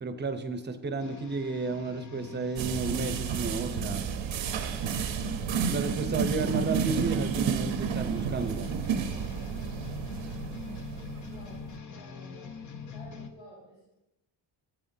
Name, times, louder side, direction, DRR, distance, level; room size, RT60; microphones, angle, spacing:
voice 1, 0.0-4.1 5.7-8.7, right 3 dB, 25° right, 8 dB, 0.7 m, -32 dB
sound 1, 1.0-13.3, left 5 dB, 40° left, 0.8 m, -43 dB
sound 2, 2.6-11.8, right 7 dB, 85° right, 0.9 m, -31 dB
voice 2, 11.2-12.5 12.9-13.9, equal, 75° left, -7 dB, 4.3 m, -52 dB
15.0 x 8.6 x 2.7 m, 0.89 s
wide cardioid pair, 145°, 45 cm